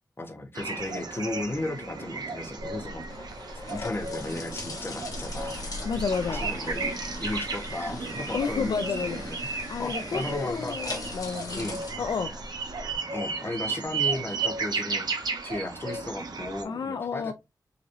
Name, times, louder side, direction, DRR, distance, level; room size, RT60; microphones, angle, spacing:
voice 1, 0.2-3.0 3.7-5.7 6.3-6.9 7.2-9.5 9.8-10.8 11.5-11.8 13.1-15.1 15.4-17.3, left 2 dB, 35° left, 0.9 m, -35 dB
sound 1, 0.5-16.6, right 4 dB, 80° right, 0.8 m, -34 dB
sound 2, 2.6-13.0, left 2 dB, 60° left, 1.1 m, -39 dB
voice 2, 5.8-6.5 8.3-9.2 9.7-11.7 12.0-12.3 16.6-17.3, left 5 dB, 80° left, 0.3 m, -30 dB
3.9 x 3.0 x 2.6 m
wide cardioid pair, 105°, 7 cm